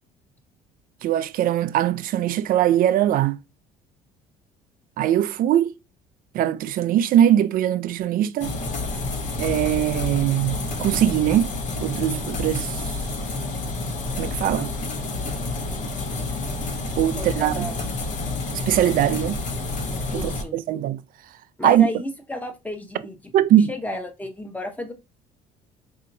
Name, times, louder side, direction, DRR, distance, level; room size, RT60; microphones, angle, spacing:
voice 1, 1.0-3.4 5.0-5.7 6.3-8.5 9.4-11.5 11.8-12.8 14.2-14.7 17.0-17.7 18.7-19.4 20.1-21.0 21.6-21.9 23.3-23.7, right 11 dB, 55° right, 0.4 m, -21 dB
sound 1, 8.4-20.4, left 2 dB, 50° left, 1.0 m, -29 dB
voice 2, 17.2-17.8 20.1-20.6 21.6-23.2 23.5-24.9, left 1 dB, 10° left, 1.1 m, -32 dB
4.3 x 2.7 x 2.7 m
supercardioid pair, 85°, 17 cm